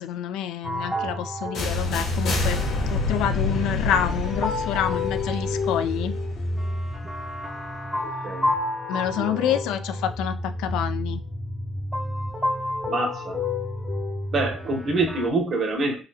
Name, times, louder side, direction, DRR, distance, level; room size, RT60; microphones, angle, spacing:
voice 1, 0.0-2.6 2.9-6.2 8.9-11.2, left 10 dB, 85° left, 10 dB, 0.3 m, -27 dB
sound 1, 0.6-15.3, left 1 dB, ahead, 0.5 m, -30 dB
sound 2, 1.5-7.4, left 3 dB, 65° left, 1.3 m, -29 dB
voice 2, 8.0-8.5 9.2-9.6 12.9-13.4 14.3-16.0, right 2 dB, 40° right, 3 dB, 0.8 m, -26 dB
4.0 x 2.7 x 2.7 m, 0.32 s
cardioid pair, 135°, 0 cm